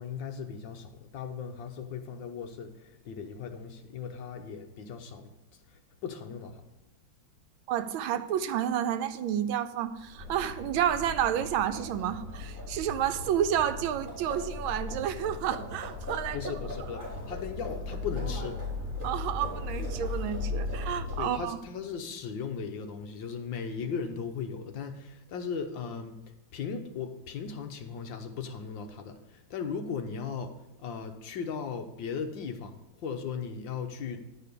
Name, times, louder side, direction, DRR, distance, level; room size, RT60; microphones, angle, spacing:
voice 1, 0.0-5.3 5.7-6.6 16.3-18.6 21.2-26.2 26.5-30.5 30.8-34.2, left 6 dB, 75° left, 5 dB, 1.6 m, -37 dB
voice 2, 7.7-16.4 19.0-21.6, right 10 dB, 90° right, 10 dB, 1.5 m, -30 dB
Livestock farm animals working animals, 10.0-21.6, left 2 dB, 35° right, 3.4 m, -37 dB
10.5 x 4.9 x 6.7 m, 0.95 s
omnidirectional pair, 2.2 m